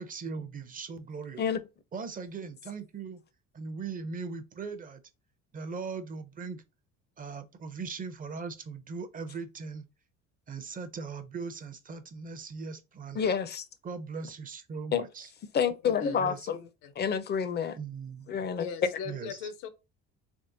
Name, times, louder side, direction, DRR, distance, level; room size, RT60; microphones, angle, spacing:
voice 1, 0.0-1.4 1.9-3.2 3.5-5.0 5.5-6.6 7.2-9.8 10.5-13.3 13.8-15.3 16.0-16.6 17.8-18.3 19.0-19.5, right 5 dB, 25° right, 0.6 m, -39 dB
voice 2, 13.2-13.6 14.9-15.0 15.5-16.6 17.0-17.8 18.3-18.7, left 7 dB, 35° left, 0.5 m, -28 dB
voice 3, 15.8-16.2 16.5-16.9 18.6-19.7, left 6 dB, 80° left, 0.8 m, -40 dB
3.5 x 3.3 x 2.6 m
cardioid pair, 105°, 31 cm